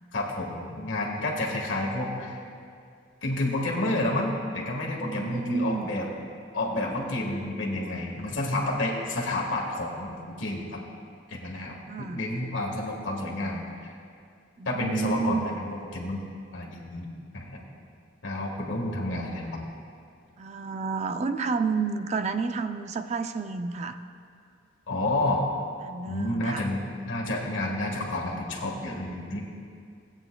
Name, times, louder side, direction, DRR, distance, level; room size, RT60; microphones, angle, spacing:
voice 1, 0.1-2.4 3.2-6.1 6.5-10.8 11.3-13.9 14.6-16.2 16.5-17.1 17.3-17.6 18.2-19.6 24.9-25.5 26.1-29.4, left 1 dB, 80° left, -1 dB, 1.6 m, -30 dB
voice 2, 5.0-5.9 11.9-12.2 14.6-15.5 20.4-24.0 25.8-26.7, right 4 dB, 35° right, 8 dB, 0.4 m, -30 dB
16.5 x 8.8 x 2.2 m, 2.4 s
head